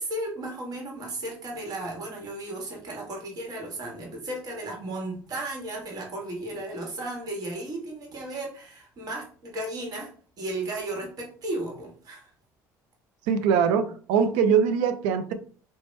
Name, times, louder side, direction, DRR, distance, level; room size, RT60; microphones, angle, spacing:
voice 1, 0.0-10.1 10.4-12.3, right 1 dB, 50° right, 0 dB, 1.2 m, -34 dB
voice 2, 13.3-15.3, right 7 dB, 85° right, 10 dB, 0.4 m, -22 dB
2.9 x 2.1 x 3.1 m, 0.44 s
supercardioid pair, 85°, 8 cm